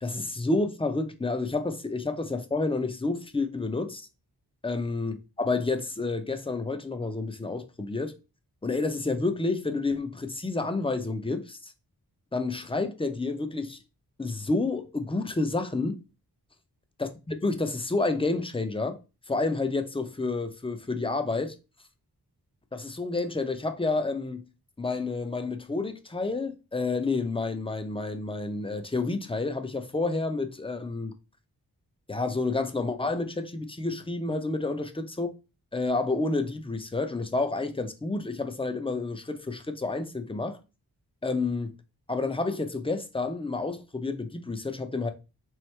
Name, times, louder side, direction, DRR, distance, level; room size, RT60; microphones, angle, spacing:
voice 1, 0.0-4.1 4.6-8.1 8.6-11.7 12.3-13.8 14.2-16.0 17.0-19.0 19.3-21.5 22.7-24.5 24.8-31.1 32.1-35.3 35.7-40.6 41.2-41.7 42.1-45.1, left 3 dB, 15° left, 0.6 m, -29 dB
3.6 x 3.2 x 3.2 m
wide cardioid pair, 75°, 39 cm